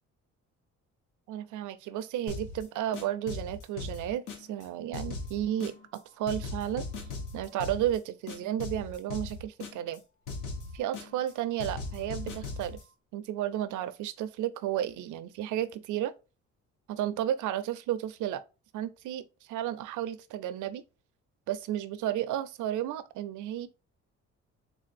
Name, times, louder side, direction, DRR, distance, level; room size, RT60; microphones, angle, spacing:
voice 1, 1.3-6.9 7.3-10.0 10.7-12.8 13.1-16.1 16.9-18.4 18.7-20.8 21.5-23.7, right 11 dB, 80° right, 0.5 m, -33 dB
sound 1, 2.3-2.6 2.9-4.6 4.9-6.0 6.3-8.0 8.3-10.0 10.3-11.3 11.6-12.8, left 3 dB, 80° left, 1.1 m, -39 dB
3.5 x 3.3 x 2.5 m
cardioid pair, 90°, 30 cm